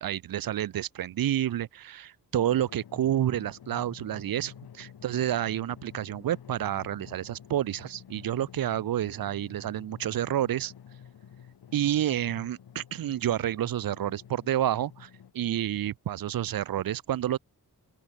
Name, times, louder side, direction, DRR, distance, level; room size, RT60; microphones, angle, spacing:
voice 1, 0.0-10.7 11.7-17.4, right 11 dB, 65° right, 0.6 m, -29 dB
Drum, 2.3-15.3, left 9 dB, 75° left, 1.5 m, -50 dB
open air
cardioid pair, 65°, 38 cm